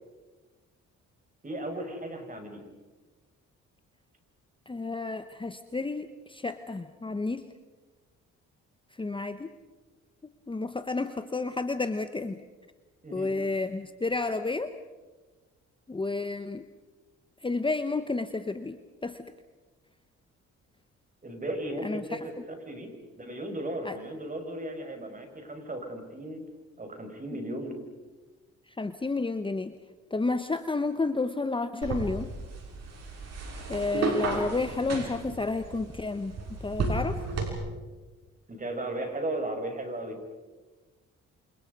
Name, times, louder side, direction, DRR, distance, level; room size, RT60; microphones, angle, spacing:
voice 1, 1.4-2.7 13.0-13.3 21.2-22.4 22.7-22.9 23.2-26.4 26.8-27.7 38.5-40.2, right 1 dB, 25° right, 5 dB, 6.1 m, -36 dB
voice 2, 4.7-7.5 8.9-9.5 10.5-12.4 13.1-14.7 15.9-16.6 17.4-19.2 21.8-22.3 23.8-24.0 28.7-29.8 30.1-32.3 33.7-37.2, left 3 dB, 15° left, 9 dB, 1.1 m, -31 dB
sound 1, 31.8-37.5, right 3 dB, 60° right, 6.4 m, -33 dB
28.5 x 27.5 x 5.4 m, 1.3 s
cardioid pair, 90°, 30 cm